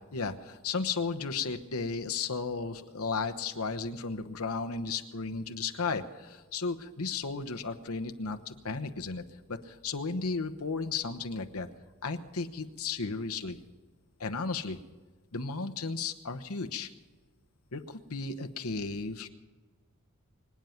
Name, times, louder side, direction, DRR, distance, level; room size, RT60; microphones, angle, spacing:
voice 1, 0.1-11.7 12.0-13.6 14.2-14.8 15.3-16.9 17.7-19.3, left 4 dB, 75° left, 6 dB, 1.1 m, -34 dB
24.5 x 9.4 x 5.9 m, 1.3 s
head